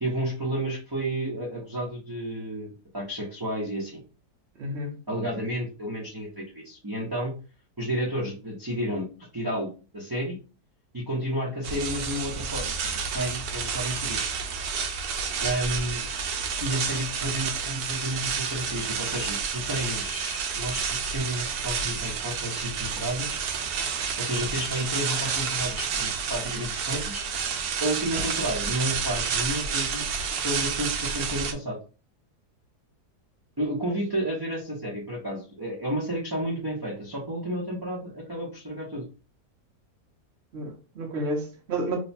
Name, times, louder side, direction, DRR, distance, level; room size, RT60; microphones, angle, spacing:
voice 1, 0.0-2.7 2.9-4.0 5.1-7.3 7.8-9.1 9.3-10.4 10.9-14.2 15.4-16.0 16.6-23.4 24.2-27.2 27.8-30.0 30.3-31.8 33.6-39.0, right 1 dB, 20° right, 0.6 m, -31 dB
voice 2, 4.6-5.0 40.5-42.0, right 1 dB, 45° right, 1.2 m, -31 dB
sound 1, 11.6-31.5, right 6 dB, 75° right, 1.1 m, -30 dB
3.2 x 2.2 x 4.1 m
omnidirectional pair, 1.7 m